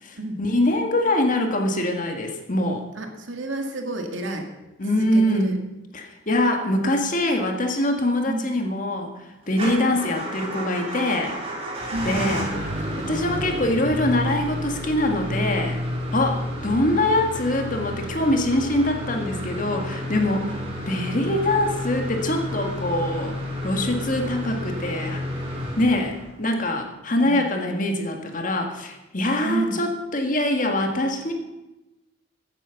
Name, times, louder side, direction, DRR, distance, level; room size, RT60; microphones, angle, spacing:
voice 1, 0.0-2.8 4.8-5.5 5.9-11.4 12.0-12.4 13.0-15.8 16.1-20.6 20.9-23.3 23.6-25.2 25.8-31.3, left 1 dB, 40° left, 4 dB, 1.8 m, -24 dB
voice 2, 3.0-4.5 5.0-5.5 8.3-8.5 9.8-10.0 11.9-12.6 16.9-17.0 27.2-27.5 29.4-29.8, right 1 dB, 75° right, 3 dB, 2.0 m, -30 dB
Motor vehicle (road) / Engine starting / Idling, 9.5-26.5, equal, 30° right, 3.1 m, -30 dB
15.0 x 9.2 x 5.8 m, 1.0 s
head